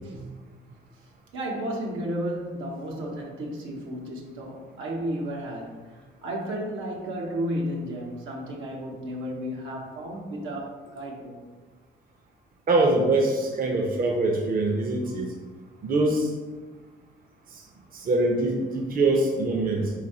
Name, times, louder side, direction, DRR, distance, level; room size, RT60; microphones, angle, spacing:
voice 1, 0.0-0.4 1.3-11.3, equal, 80° right, -1 dB, 0.9 m, -33 dB
voice 2, 12.7-15.3 15.8-16.3 17.9-19.9, right 2 dB, 45° right, 1 dB, 0.7 m, -23 dB
4.1 x 2.7 x 4.2 m, 1.4 s
cardioid pair, 90°, 20 cm